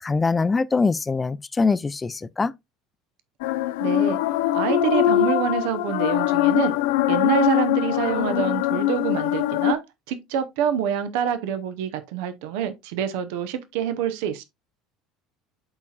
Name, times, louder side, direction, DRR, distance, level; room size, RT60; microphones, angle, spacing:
voice 1, 0.0-2.5, left 4 dB, 20° left, 0.5 m, -23 dB
sound 1, 3.4-9.7, left 14 dB, 70° left, 0.4 m, -22 dB
voice 2, 3.8-4.2 4.5-6.7 7.1-9.8 10.1-14.4, right 9 dB, 70° right, 0.9 m, -26 dB
12.0 x 4.2 x 2.4 m
hypercardioid pair, 70°, 0 cm